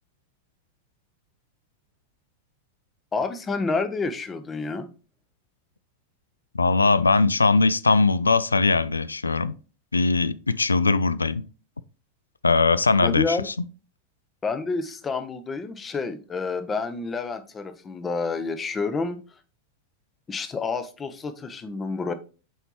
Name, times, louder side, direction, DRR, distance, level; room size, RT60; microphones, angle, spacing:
voice 1, 3.1-4.9 13.0-13.5 14.4-19.2 20.3-22.1, left 4 dB, 20° left, 0.8 m, -29 dB
voice 2, 6.5-9.5 9.9-11.4 12.4-13.5, left 3 dB, 80° left, 0.3 m, -20 dB
7.9 x 4.5 x 2.9 m
figure-of-eight pair, 90°, 0 cm